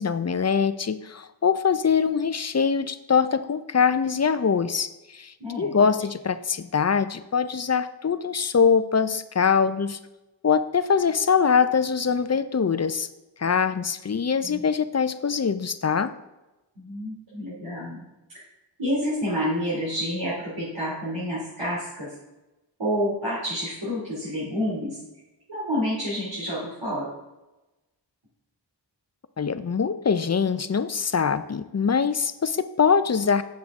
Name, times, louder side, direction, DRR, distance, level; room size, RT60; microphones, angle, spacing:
voice 1, 0.0-10.0 10.4-13.1 13.4-16.1 29.4-33.4, left 6 dB, 35° left, 13 dB, 0.5 m, -23 dB
voice 2, 5.4-5.9 14.4-14.6 16.8-18.0 18.8-22.1 22.8-25.0 25.5-27.1, equal, 75° right, -9 dB, 2.8 m, -29 dB
7.5 x 7.4 x 3.6 m, 1.0 s
wide cardioid pair, 50°, 45 cm